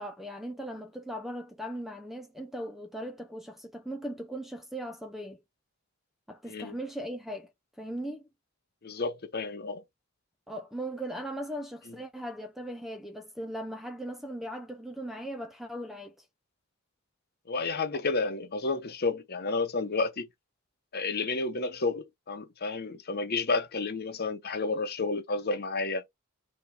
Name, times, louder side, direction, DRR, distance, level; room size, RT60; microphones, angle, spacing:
voice 1, 0.0-5.4 6.3-7.5 7.8-8.3 10.5-16.2, right 1 dB, ahead, 0.4 m, -38 dB
voice 2, 8.8-9.8 11.9-12.0 17.5-20.3 20.9-26.0, left 3 dB, 50° left, 0.9 m, -31 dB
3.4 x 3.1 x 4.4 m
head